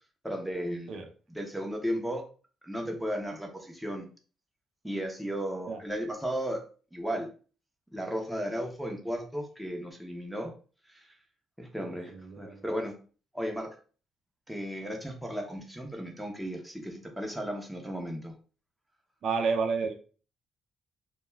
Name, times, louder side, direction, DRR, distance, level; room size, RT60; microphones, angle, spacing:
voice 1, 0.2-1.0 1.3-2.2 2.6-4.1 4.8-6.6 6.9-7.3 7.9-10.5 10.9-11.1 11.6-12.9 13.3-13.8 14.5-18.3, equal, 5° right, 1 dB, 0.7 m, -35 dB
voice 2, 11.8-12.6 19.2-19.9, right 5 dB, 65° right, 4 dB, 0.5 m, -31 dB
2.3 x 2.2 x 3.0 m, 0.38 s
cardioid pair, 90°, 0 cm